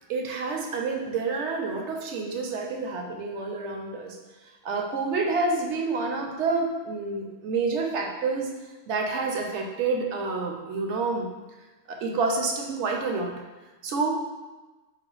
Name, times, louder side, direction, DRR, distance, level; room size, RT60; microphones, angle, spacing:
voice 1, 0.1-4.2 4.6-8.5 8.9-11.3 11.9-13.3 13.8-14.2, right 3 dB, 75° right, 2 dB, 0.9 m, -28 dB
4.2 x 2.2 x 3.9 m, 1.2 s
omnidirectional pair, 1.3 m